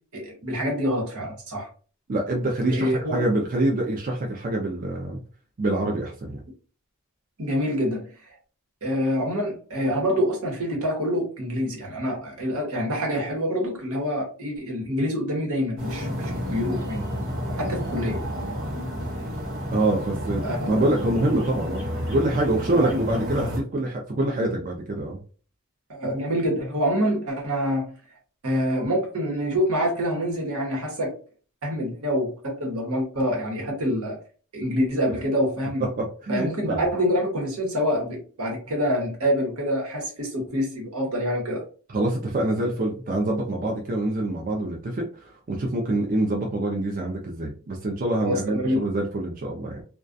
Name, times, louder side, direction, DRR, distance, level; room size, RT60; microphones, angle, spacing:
voice 1, 0.1-1.7 2.7-3.2 7.4-8.1 8.8-17.1 17.6-18.2 20.4-20.8 22.8-23.0 25.9-27.9 28.4-31.1 31.6-34.2 34.5-35.9 36.3-41.6 48.2-48.8, equal, 85° right, 0 dB, 1.0 m, -26 dB
voice 2, 2.1-5.2 5.6-6.4 19.7-25.2 36.0-36.9 41.9-45.0 45.5-49.8, right 1 dB, 40° right, 0 dB, 0.4 m, -25 dB
sound 1, 15.8-23.6, equal, 60° right, 1.0 m, -30 dB
2.3 x 2.2 x 2.5 m, 0.39 s
head